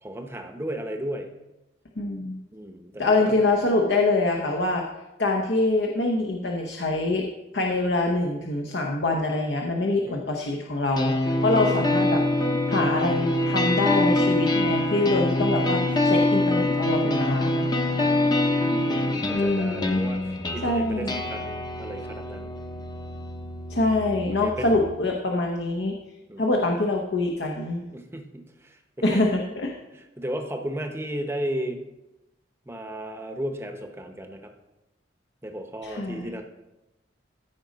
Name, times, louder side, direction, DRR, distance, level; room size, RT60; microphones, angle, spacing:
voice 1, 0.0-1.3 2.5-3.3 10.0-10.3 18.0-22.5 24.4-24.7 26.3-26.4 27.9-28.8 29.1-29.2 29.9-31.8 32.7-34.5 35.4-36.4, right 1 dB, 15° right, 5 dB, 0.8 m, -35 dB
voice 2, 2.0-2.4 3.0-4.8 5.2-7.2 7.5-11.1 11.4-12.2 12.7-17.6 19.3-20.0 20.6-21.2 23.7-25.9 26.4-27.9 29.0-29.7 35.8-36.3, left 2 dB, 70° left, 1 dB, 0.9 m, -24 dB
sound 1, 11.0-24.9, left 1 dB, 20° left, 0.8 m, -25 dB
14.0 x 5.2 x 4.0 m, 0.99 s
head